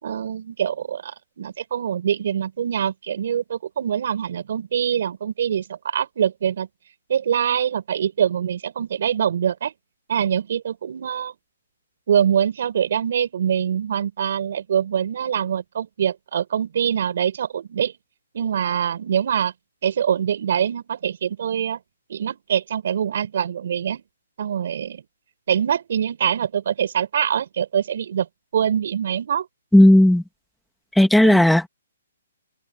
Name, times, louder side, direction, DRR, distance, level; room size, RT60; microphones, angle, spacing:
voice 1, 0.0-6.7 7.1-9.7 10.1-11.3 12.1-17.9 18.3-19.5 19.8-21.8 22.1-24.0 24.4-25.0 25.5-28.3 28.5-29.5 31.2-31.5, right 8 dB, 60° right, 5.6 m, -24 dB
voice 2, 29.7-30.2 31.0-31.7, left 1 dB, ahead, 2.0 m, -13 dB
open air
hypercardioid pair, 155°, 0 cm